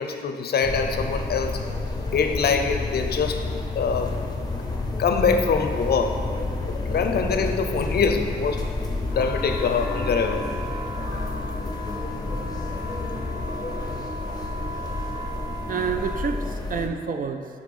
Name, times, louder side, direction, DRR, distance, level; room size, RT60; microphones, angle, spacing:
voice 1, 0.0-1.6 2.1-3.4 3.8-4.1 5.0-6.2 6.7-8.6 9.2-10.5, left 5 dB, 65° left, 6 dB, 0.5 m, -24 dB
sound 1, 0.6-16.9, left 2 dB, 20° left, 0.6 m, -30 dB
sound 2, 9.1-16.3, right 1 dB, 20° right, 0.7 m, -37 dB
voice 2, 15.3-17.5, right 5 dB, 50° right, 7 dB, 0.4 m, -30 dB
5.0 x 4.0 x 5.3 m, 2.2 s
wide cardioid pair, 125°, 18 cm